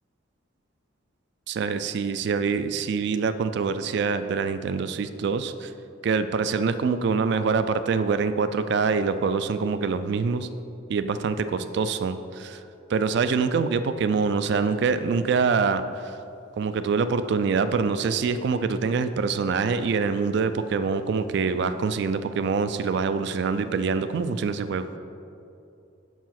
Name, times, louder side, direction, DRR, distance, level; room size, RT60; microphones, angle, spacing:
voice 1, 1.5-5.7 6.0-10.5 10.9-12.6 12.9-16.2 16.6-24.8, right 5 dB, 60° right, 12 dB, 0.3 m, -25 dB
5.6 x 4.7 x 5.8 m, 2.6 s
head